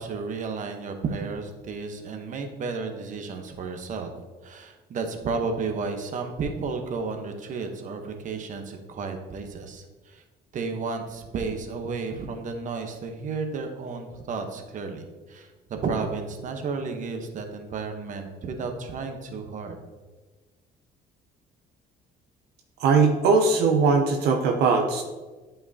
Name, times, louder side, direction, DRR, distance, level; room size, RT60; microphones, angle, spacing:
voice 1, 0.0-4.1 4.4-10.2 10.5-19.8, right 4 dB, 50° right, 5 dB, 1.0 m, -32 dB
voice 2, 22.8-25.0, right 4 dB, 80° right, 3 dB, 0.7 m, -20 dB
9.0 x 5.5 x 2.8 m, 1.3 s
cardioid pair, 110°, 17 cm